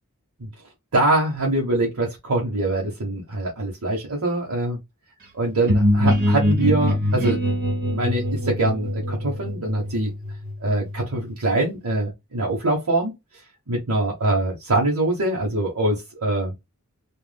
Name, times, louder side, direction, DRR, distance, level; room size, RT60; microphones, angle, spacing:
voice 1, 0.9-4.8 5.4-7.4 7.9-10.1 10.6-13.1 13.7-16.5, right 2 dB, 80° right, 1.0 m, -23 dB
sound 1, 5.7-11.3, left 1 dB, 45° right, 1.3 m, -23 dB
3.4 x 2.4 x 2.2 m
head